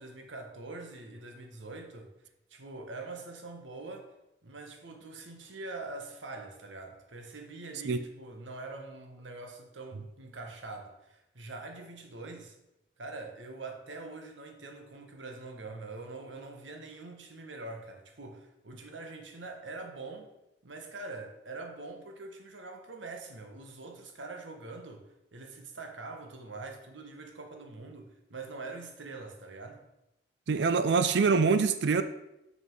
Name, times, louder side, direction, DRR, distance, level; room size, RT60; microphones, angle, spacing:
voice 1, 0.0-2.1 2.5-4.1 4.4-12.5 13.0-20.3 20.6-25.0 25.3-29.8, right 3 dB, 90° right, 4 dB, 1.3 m, -44 dB
voice 2, 30.5-32.0, right 5 dB, 65° right, 11 dB, 0.4 m, -24 dB
6.3 x 5.5 x 5.5 m, 0.89 s
head